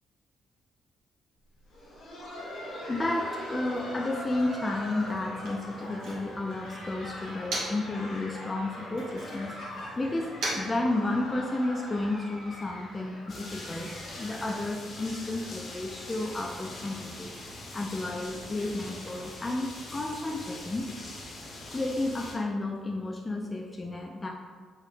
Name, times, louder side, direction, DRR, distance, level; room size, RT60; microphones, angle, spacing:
Laughter, 1.6-17.2 17.5-17.6 18.2-18.3 18.9-19.1 20.1-20.2, left 1 dB, 80° left, 1.2 m, -42 dB
voice 1, 2.9-9.6 10.0-13.9 14.2-17.3 17.7-20.9 21.7-24.3, left 2 dB, 25° left, 0 dB, 0.3 m, -32 dB
Motor vehicle (road), 3.5-8.0 8.3-11.6, right 1 dB, 90° right, 0.9 m, -41 dB
sound 1, 13.3-22.3, left 2 dB, 55° left, 0.8 m, -43 dB
3.9 x 2.1 x 3.2 m, 1.5 s
cardioid pair, 90°, 0 cm